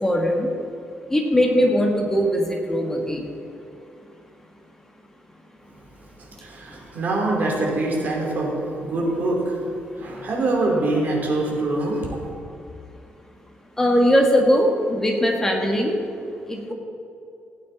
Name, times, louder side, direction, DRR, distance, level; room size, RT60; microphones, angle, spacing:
voice 1, 0.0-0.5 1.1-3.3 6.7-6.8 13.8-15.9 16.5-16.7, equal, 10° left, 1 dB, 1.7 m, -20 dB
voice 2, 6.4-8.5 8.8-9.6 10.0-12.1, right 2 dB, 50° right, -2 dB, 3.2 m, -24 dB
16.5 x 8.7 x 4.1 m, 2.6 s
cardioid pair, 130°, 4 cm